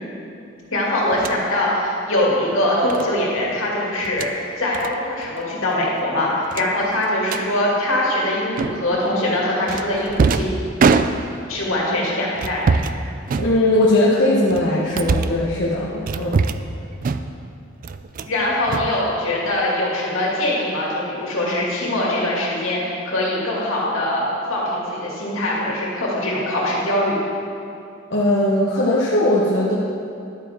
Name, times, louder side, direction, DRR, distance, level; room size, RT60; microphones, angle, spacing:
voice 1, 0.7-10.5 11.5-12.8 18.3-27.2, left 1 dB, 80° left, -4 dB, 2.3 m, -22 dB
sound 1, 1.1-1.4 2.9-3.1 4.0-4.3 4.7-4.9 5.2-5.4 5.7-5.8 6.5-7.5 8.6-9.0 9.7-11.5 12.4-13.0 13.3-14.0 14.5-15.4 16.1-16.7 17.0-17.5 17.8-18.4 18.7-19.5, right 4 dB, 40° right, 0.3 m, -23 dB
voice 2, 13.4-16.4 28.1-29.8, left 1 dB, 60° left, -7 dB, 1.0 m, -19 dB
11.0 x 9.2 x 3.5 m, 2.6 s
head